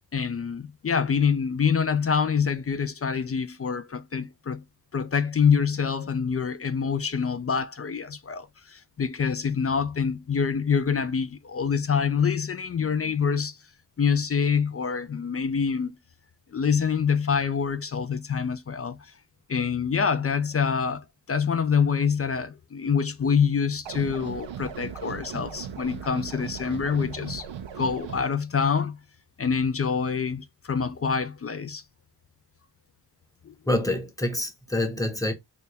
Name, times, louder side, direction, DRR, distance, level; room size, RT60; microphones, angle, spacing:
voice 1, 0.1-4.6 4.9-13.6 14.0-16.0 16.5-19.0 19.5-27.5 27.7-29.0 29.4-31.8 33.5-33.6, left 6 dB, 35° left, 0.4 m, -26 dB
sound 1, 23.9-28.2, right 8 dB, 90° right, 0.6 m, -38 dB
voice 2, 33.7-35.3, left 1 dB, 10° left, 0.9 m, -26 dB
4.0 x 2.3 x 3.3 m
wide cardioid pair, 75°, 44 cm